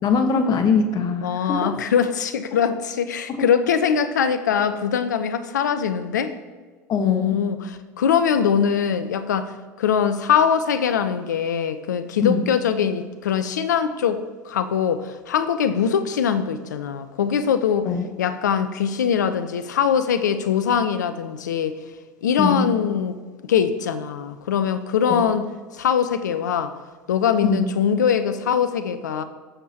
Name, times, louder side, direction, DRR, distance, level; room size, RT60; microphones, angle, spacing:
voice 1, 0.0-1.7 6.9-7.4 12.2-12.5 17.8-18.1 22.4-22.7 25.0-25.3 27.4-27.7, left 5 dB, 45° left, 6 dB, 1.4 m, -22 dB
voice 2, 1.2-6.3 7.0-7.7 8.0-9.5 9.8-17.9 18.2-21.7 22.2-23.1 23.5-25.4 25.7-26.7 27.1-29.2, left 7 dB, 80° left, 11 dB, 0.7 m, -22 dB
18.5 x 7.4 x 2.9 m, 1.4 s
hypercardioid pair, 75°, 9 cm